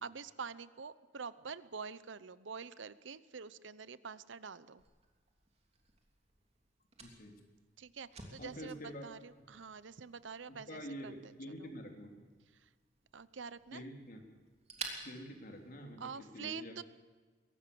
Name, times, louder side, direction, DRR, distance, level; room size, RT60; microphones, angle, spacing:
voice 1, 0.0-4.8 7.8-11.3 11.6-11.7 12.5-12.7 13.1-13.8 16.0-16.8, right 5 dB, 75° right, 16 dB, 0.8 m, -46 dB
Fire, 4.8-16.3, right 4 dB, 35° right, 3.0 m, -53 dB
voice 2, 7.0-7.4 8.4-9.1 10.5-12.3 13.7-14.2 15.0-16.8, equal, 50° left, 3 dB, 3.4 m, -47 dB
22.5 x 18.0 x 7.0 m, 1.4 s
head